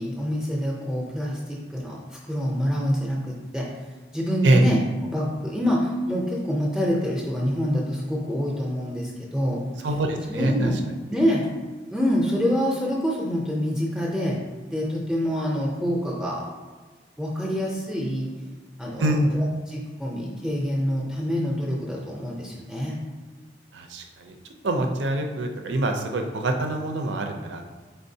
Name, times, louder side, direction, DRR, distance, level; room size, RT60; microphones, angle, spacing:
voice 1, 0.0-2.0 2.2-3.7 4.1-9.6 10.3-10.8 11.1-11.5 11.9-14.4 14.7-16.5 17.2-18.3 18.8-23.0, equal, 5° right, -4 dB, 0.5 m, -26 dB
voice 2, 9.8-10.7 19.0-19.4 23.7-24.3 24.6-27.6, right 2 dB, 90° right, 4 dB, 0.5 m, -24 dB
4.4 x 3.5 x 2.7 m, 1.4 s
head